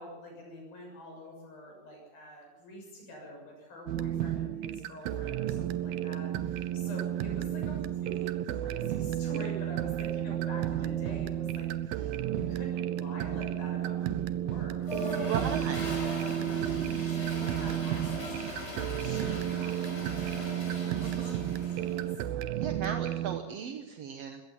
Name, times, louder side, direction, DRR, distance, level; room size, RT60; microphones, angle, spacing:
voice 1, 0.0-15.9 16.3-22.2 22.5-22.7, equal, 85° left, 1 dB, 8.7 m, -46 dB
sound 1, 3.9-23.4, right 11 dB, 90° right, 2.7 m, -32 dB
Toilet flush, 14.8-22.1, equal, 15° left, 5.8 m, -39 dB
voice 2, 15.3-15.9 21.0-21.4 22.5-24.4, right 7 dB, 60° right, 6 dB, 1.7 m, -36 dB
21.0 x 17.0 x 7.2 m, 1.0 s
omnidirectional pair, 4.1 m